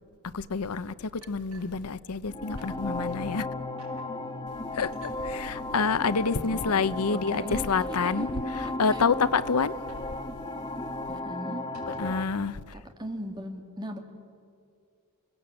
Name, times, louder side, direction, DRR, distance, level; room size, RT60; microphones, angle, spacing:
voice 1, 0.3-3.5 4.7-4.9 5.2-8.3 8.8-9.7 12.0-12.6, left 5 dB, 85° left, 0.7 m, -27 dB
sound 1, 1.2-2.3 2.6-2.7 3.1-3.3 3.8-4.1 4.9-5.2 6.1-6.4 7.3-7.7 8.4-8.5 8.8-9.0 9.9-10.1 10.4-10.5 10.8-11.0 11.6-12.3, right 2 dB, 70° right, 6.3 m, -53 dB
sound 2, 2.2-12.2, left 2 dB, 20° left, 1.2 m, -35 dB
voice 2, 6.3-6.6 7.1-9.0 11.1-11.6 12.7-14.0, equal, 20° right, 2.2 m, -38 dB
29.5 x 18.0 x 8.6 m
head